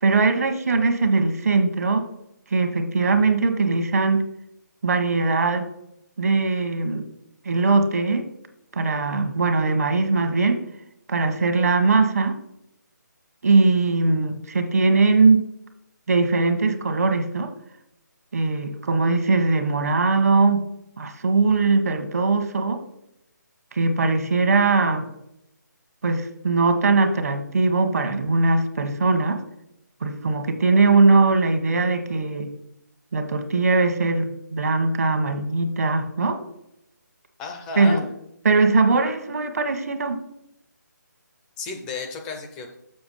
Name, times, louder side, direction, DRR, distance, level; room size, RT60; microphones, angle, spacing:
voice 1, 0.0-2.1 2.5-4.3 4.8-5.7 6.2-7.1 7.4-8.3 8.7-10.6 11.1-12.4 13.4-15.4 16.1-17.5 18.3-20.6 21.0-22.8 23.7-25.1 26.0-29.4 30.0-32.5 33.1-36.4 37.8-38.0 38.4-40.2, right 3 dB, 55° right, 7 dB, 1.2 m, -20 dB
voice 2, 37.4-38.0 41.6-42.8, left 4 dB, 5° left, 3 dB, 0.4 m, -33 dB
6.9 x 6.0 x 5.5 m, 0.80 s
hypercardioid pair, 170°, 10 cm